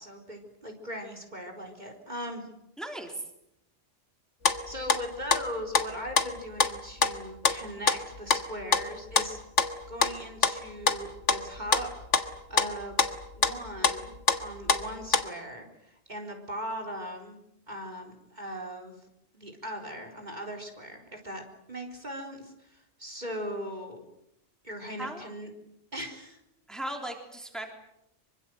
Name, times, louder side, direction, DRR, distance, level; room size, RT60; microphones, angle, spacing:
voice 1, 0.0-2.5 4.7-9.4 9.9-11.9 12.5-13.0 13.3-14.1 14.4-17.4 17.7-19.0 19.3-21.4 21.7-24.1 24.6-25.5 25.9-26.4, equal, 35° right, 4 dB, 4.3 m, -39 dB
voice 2, 2.8-3.2 25.0-25.2 26.7-27.7, right 1 dB, ahead, 3 dB, 3.5 m, -37 dB
sound 1, 4.4-8.4 8.7-15.3, left 5 dB, 75° left, 1.9 m, -26 dB
25.5 x 24.5 x 7.8 m, 0.79 s
omnidirectional pair, 1.2 m